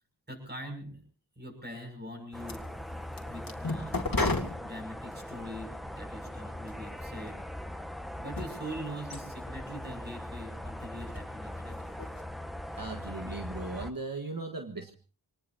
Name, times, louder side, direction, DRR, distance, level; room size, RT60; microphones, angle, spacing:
voice 1, 0.3-1.0 1.4-2.9 3.3-4.3 4.6-7.3 8.1-11.8, equal, 25° right, 3 dB, 6.8 m, -43 dB
sound 1, 2.3-5.3 6.0-6.9 7.3-8.0 8.3-8.5 9.1-9.2 9.9-10.0 10.9-11.3 11.5-12.2, left 2 dB, 55° left, 2.5 m, -34 dB
sound 2, 2.3-13.9, left 1 dB, ahead, 1.4 m, -41 dB
voice 2, 12.7-14.9, right 3 dB, 60° right, 4 dB, 1.6 m, -38 dB
26.5 x 19.5 x 2.8 m, 0.38 s
wide cardioid pair, 55°, 40 cm